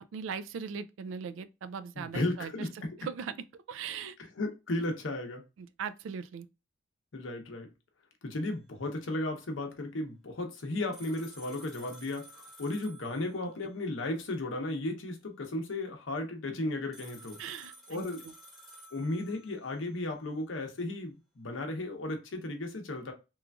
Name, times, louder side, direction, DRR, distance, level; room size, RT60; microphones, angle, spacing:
voice 1, 0.1-2.7 3.0-3.4 3.7-4.2 5.6-6.5 17.4-18.3, right 6 dB, 90° right, 0.3 m, -39 dB
voice 2, 2.0-2.9 4.4-5.4 7.1-7.7 8.2-17.4 17.9-18.2 18.9-23.1, left 2 dB, 85° left, 0.7 m, -35 dB
sound 1, 10.9-13.8 16.9-19.9, right 1 dB, ahead, 0.8 m, -53 dB
3.0 x 2.4 x 2.2 m
head